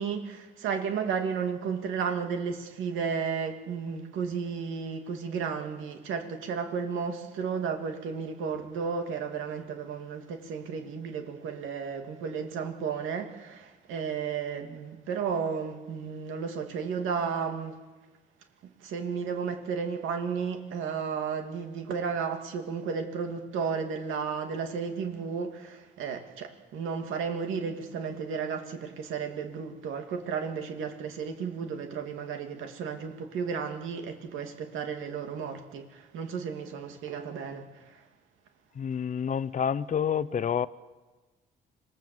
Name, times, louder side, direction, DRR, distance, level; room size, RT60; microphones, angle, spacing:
voice 1, 0.0-17.8 18.8-38.0, right 6 dB, 90° right, 5 dB, 2.6 m, -33 dB
voice 2, 38.8-40.7, left 7 dB, 40° left, 15 dB, 0.7 m, -28 dB
26.5 x 18.0 x 7.9 m, 1.3 s
cardioid pair, 90°, 20 cm